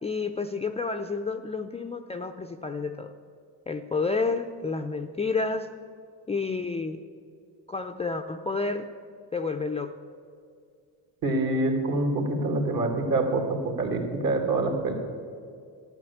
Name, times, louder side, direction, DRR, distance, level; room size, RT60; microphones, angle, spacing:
voice 1, 0.0-3.1 3.7-5.7 6.3-7.0 7.7-8.8 9.3-9.9, left 4 dB, 15° left, 6 dB, 0.5 m, -30 dB
voice 2, 11.2-14.9, right 2 dB, 55° right, 3 dB, 2.6 m, -26 dB
12.0 x 9.7 x 7.1 m, 2.2 s
supercardioid pair, 90°, 42 cm